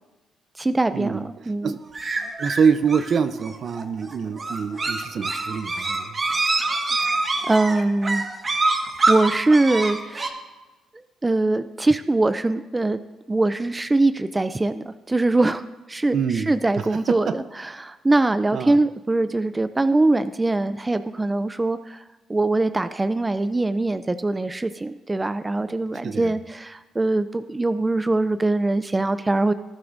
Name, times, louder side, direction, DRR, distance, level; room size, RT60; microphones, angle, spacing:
voice 1, 0.6-1.7 7.5-8.2 9.1-10.3 11.2-13.0 13.3-15.6 15.9-22.0 22.3-29.5, right 2 dB, 20° right, 11 dB, 0.4 m, -22 dB
sound 1, 1.9-10.3, right 3 dB, 35° right, 1.6 m, -25 dB
voice 2, 2.4-6.2 16.1-16.5 16.8-17.4 18.5-18.8 26.0-26.3, right 6 dB, 55° right, 12 dB, 0.7 m, -25 dB
19.0 x 11.0 x 2.6 m, 1.2 s
cardioid pair, 90°, 0 cm